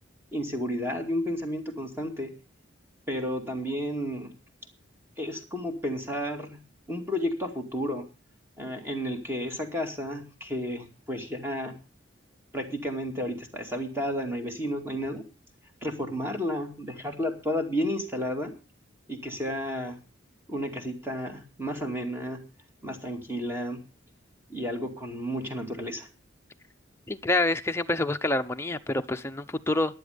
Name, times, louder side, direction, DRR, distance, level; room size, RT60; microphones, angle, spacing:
voice 1, 0.3-2.3 3.1-4.3 5.2-6.6 6.9-8.1 8.6-11.7 12.5-15.3 15.8-18.5 19.1-20.0 20.5-22.4 22.8-23.8 24.5-26.1, equal, 10° right, 4 dB, 2.4 m, -32 dB
voice 2, 27.1-29.9, left 2 dB, 15° left, 7 dB, 0.7 m, -27 dB
14.5 x 11.0 x 5.2 m, 0.32 s
head